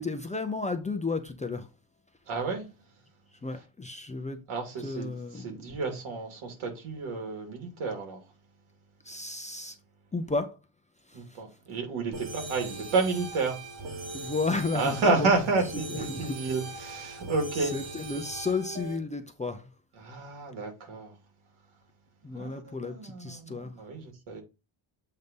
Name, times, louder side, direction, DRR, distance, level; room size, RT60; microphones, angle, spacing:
voice 1, 0.0-1.7 3.4-4.4 4.8-5.7 9.0-9.8 10.1-10.5 11.1-11.4 14.1-15.3 16.1-16.4 17.6-19.7 22.2-23.7, left 3 dB, 15° left, 0.6 m, -33 dB
voice 2, 2.3-2.7 4.5-8.2 11.1-13.6 13.9-14.3 14.7-17.8 20.0-21.1 22.3-24.4, right 3 dB, 75° right, 2.6 m, -31 dB
sound 1, 12.1-19.0, right 2 dB, 50° right, 3.2 m, -40 dB
7.9 x 2.8 x 5.3 m
cardioid pair, 155°, 49 cm